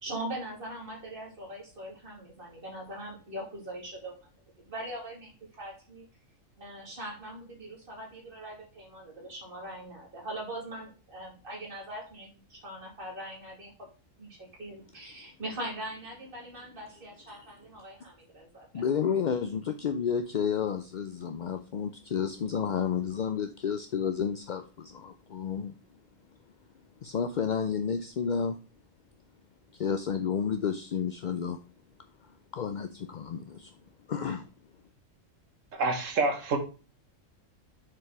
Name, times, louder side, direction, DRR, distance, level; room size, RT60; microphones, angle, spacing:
voice 1, 0.0-4.3 4.6-6.1 6.6-13.9 14.2-18.7, right 1 dB, 45° right, 2.5 m, -41 dB
voice 2, 18.7-25.8 27.0-28.6 29.7-31.6 32.2-33.8 34.1-34.5, left 7 dB, 55° left, 0.5 m, -31 dB
voice 3, 35.7-36.6, right 3 dB, 75° right, 1.7 m, -27 dB
6.3 x 4.6 x 4.6 m
omnidirectional pair, 1.3 m